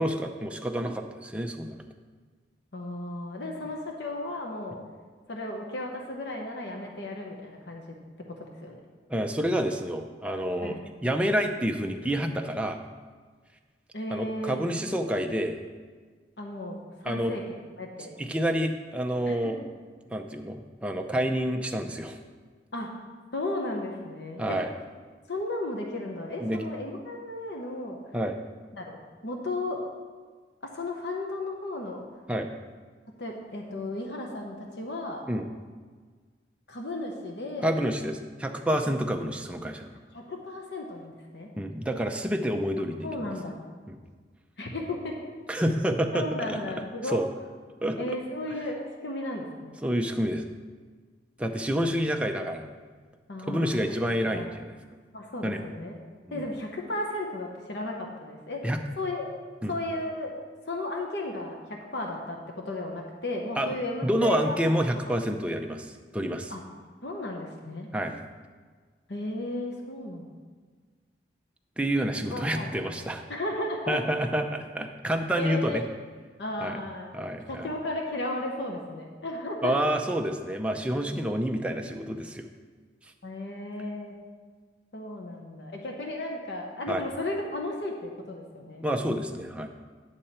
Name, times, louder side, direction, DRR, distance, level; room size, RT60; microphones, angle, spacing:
voice 1, 0.0-1.8 9.1-12.8 14.1-15.6 17.0-17.3 18.2-19.6 20.1-22.2 24.4-24.7 26.4-26.6 28.1-28.4 32.3-32.5 35.3-35.5 37.6-39.9 41.6-43.1 43.9-44.0 45.5-46.2 46.5-46.6 47.1-47.3 47.8-48.0 49.8-50.4 51.4-52.7 53.5-54.8 55.4-55.6 56.3-56.5 58.6-58.8 59.6-59.7 63.6-63.7 64.0-66.5 67.9-68.2 71.8-73.2 73.9-75.8 76.6-76.8 77.1-77.7 79.6-82.5 86.9-87.0 88.8-89.7, equal, 5° right, 3 dB, 0.5 m, -28 dB
voice 2, 2.7-4.8 5.3-8.8 10.6-10.8 13.9-14.6 16.4-17.4 17.8-18.1 19.3-19.7 22.7-22.9 23.3-24.6 25.3-28.0 28.7-29.0 29.2-29.8 30.6-32.0 33.2-35.2 36.7-37.7 40.1-41.5 43.0-43.6 44.6-45.2 45.5-45.6 46.1-47.2 48.0-49.8 53.3-53.8 54.3-54.5 55.1-56.0 56.3-58.7 59.0-59.3 59.7-60.3 60.7-64.6 66.5-66.6 67.0-67.9 69.1-70.2 72.3-72.7 73.3-74.0 75.4-75.9 76.4-77.2 77.5-79.8 83.2-84.1 84.9-88.9, left 2 dB, 75° left, 1 dB, 1.0 m, -34 dB
10.0 x 6.5 x 4.3 m, 1.5 s
head